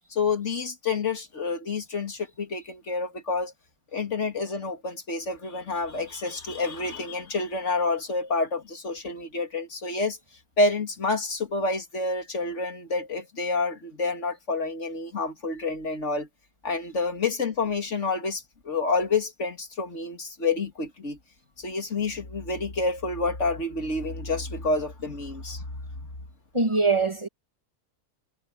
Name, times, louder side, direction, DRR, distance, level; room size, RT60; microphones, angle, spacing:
voice 1, 0.1-3.5 3.9-10.2 10.6-16.3 16.6-21.2 21.6-25.8, left 3 dB, 55° left, 2.6 m, -28 dB
voice 2, 26.5-27.3, right 3 dB, 20° right, 1.2 m, -22 dB
omnidirectional pair, 1.5 m